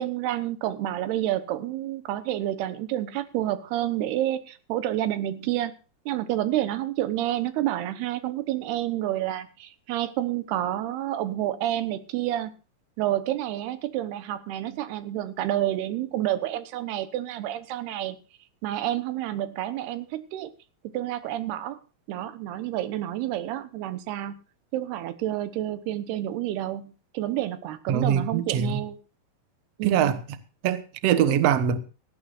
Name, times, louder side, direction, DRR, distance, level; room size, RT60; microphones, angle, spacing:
voice 1, 0.0-5.7 6.1-12.5 13.0-18.2 18.6-20.5 20.9-21.8 22.1-24.3 24.7-29.0 29.8-30.1, right 13 dB, 85° right, 3.1 m, -29 dB
voice 2, 27.9-28.8 29.8-30.2 30.6-31.8, right 9 dB, 70° right, 1.5 m, -23 dB
17.5 x 15.0 x 2.5 m
omnidirectional pair, 4.5 m